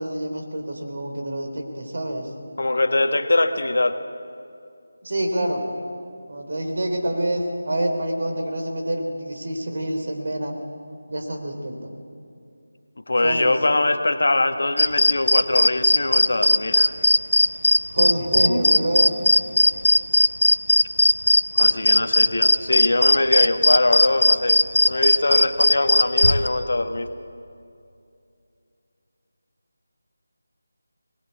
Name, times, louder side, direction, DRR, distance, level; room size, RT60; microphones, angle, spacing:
voice 1, 0.0-2.3 5.0-5.7 6.3-10.6 11.1-11.9 13.2-13.5 17.9-19.1, right 1 dB, 55° right, 3 dB, 3.4 m, -26 dB
voice 2, 2.6-4.0 13.1-16.9 21.5-24.6 24.8-27.1, left 2 dB, 65° left, 7 dB, 1.4 m, -22 dB
sound 1, 14.8-26.5, left 1 dB, 80° left, 0.9 m, -17 dB
21.0 x 20.0 x 8.4 m, 2.5 s
figure-of-eight pair, 165°, 0 cm